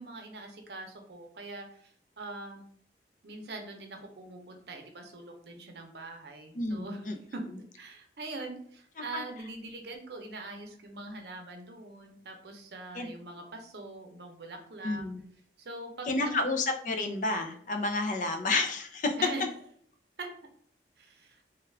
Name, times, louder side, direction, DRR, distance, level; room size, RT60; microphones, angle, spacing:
voice 1, 0.0-1.9 2.2-2.6 3.2-7.0 7.3-7.4 7.8-15.0 15.6-16.5 19.2-19.4 20.2-20.3 21.0-21.4, right 2 dB, 70° right, 3 dB, 0.7 m, -43 dB
voice 2, 6.6-7.2 9.1-9.2 12.9-13.1 14.8-15.2 16.1-19.1, left 2 dB, 45° left, 5 dB, 0.5 m, -30 dB
3.4 x 2.4 x 3.2 m, 0.62 s
head